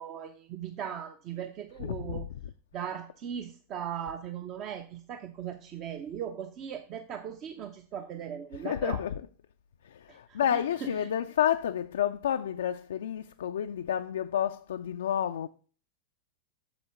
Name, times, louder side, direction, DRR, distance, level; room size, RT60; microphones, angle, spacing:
voice 1, 0.0-2.2 2.7-9.0 10.1-10.6, right 9 dB, 35° right, 0.6 m, -38 dB
voice 2, 1.8-2.5 8.5-9.3 9.8-15.5, left 9 dB, 65° left, 0.3 m, -30 dB
8.1 x 6.8 x 3.4 m
figure-of-eight pair, 90°, 0 cm